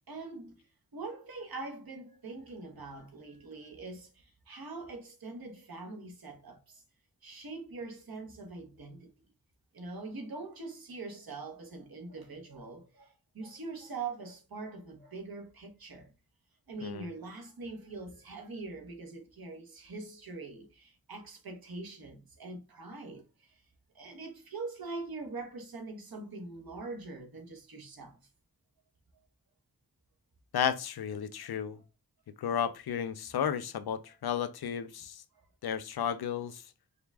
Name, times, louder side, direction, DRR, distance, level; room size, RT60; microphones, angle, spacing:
voice 1, 0.1-0.6 0.9-6.8 7.2-9.1 9.7-16.1 16.7-23.6 23.9-28.2 34.1-34.2 35.3-35.4, right 3 dB, 70° right, 1.1 m, -43 dB
voice 2, 30.5-31.8 32.4-35.2 35.6-36.6, left 8 dB, 90° left, 0.5 m, -33 dB
5.0 x 2.4 x 3.4 m
wide cardioid pair, 55°, 37 cm